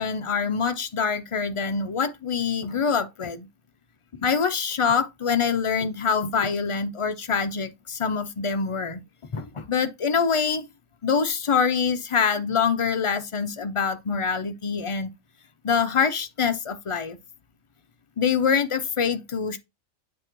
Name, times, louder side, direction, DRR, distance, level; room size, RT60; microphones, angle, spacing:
voice 1, 0.0-3.5 4.2-9.0 9.3-10.6 11.0-15.1 15.6-17.2 18.2-19.6, left 6 dB, 55° left, 0.3 m, -25 dB
7.9 x 3.0 x 4.5 m
omnidirectional pair, 1.3 m